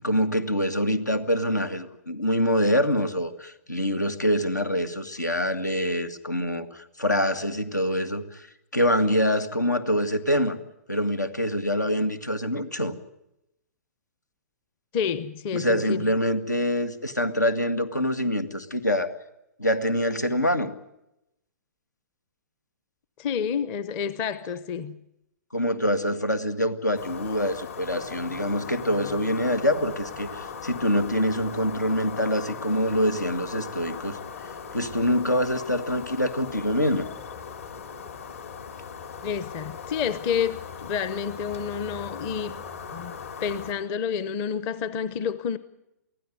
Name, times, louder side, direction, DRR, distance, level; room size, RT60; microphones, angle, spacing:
voice 1, 0.0-8.5 8.7-10.6 10.9-12.9 15.5-19.1 19.6-20.7 25.5-37.1, equal, 85° left, 2.1 m, -25 dB
voice 2, 14.9-16.1 23.2-25.0 39.2-42.6 42.9-43.1 43.4-45.6, left 7 dB, 25° left, 0.9 m, -29 dB
sound 1, 26.9-43.7, left 6 dB, 55° left, 3.4 m, -39 dB
24.0 x 15.5 x 9.5 m
figure-of-eight pair, 125°, 9 cm